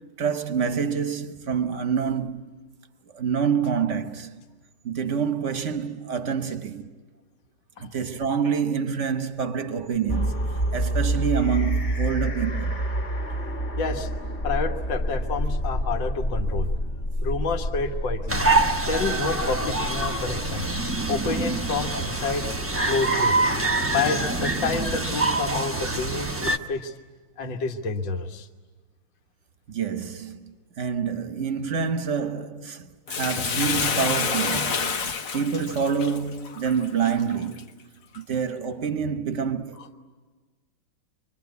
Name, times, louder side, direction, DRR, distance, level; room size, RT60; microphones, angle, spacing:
voice 1, 0.0-2.5 3.1-4.4 4.8-6.9 7.8-10.4 10.7-12.8 29.7-30.4 30.8-37.6 38.1-39.8, right 6 dB, 45° right, 1.2 m, -27 dB
sound 1, 10.1-24.7, right 1 dB, 35° left, 1.8 m, -29 dB
voice 2, 13.8-14.1 14.4-16.7 17.2-18.4 18.8-20.7 21.1-22.5 22.8-23.3 23.9-26.9 27.4-28.5 39.8-39.9, left 4 dB, 70° left, 2.0 m, -29 dB
sound 2, 18.3-26.6, right 2 dB, 15° right, 0.4 m, -25 dB
Bathtub (filling or washing), 33.1-37.6 38.1-38.2, left 5 dB, 50° left, 1.2 m, -28 dB
26.0 x 23.5 x 9.4 m
omnidirectional pair, 2.2 m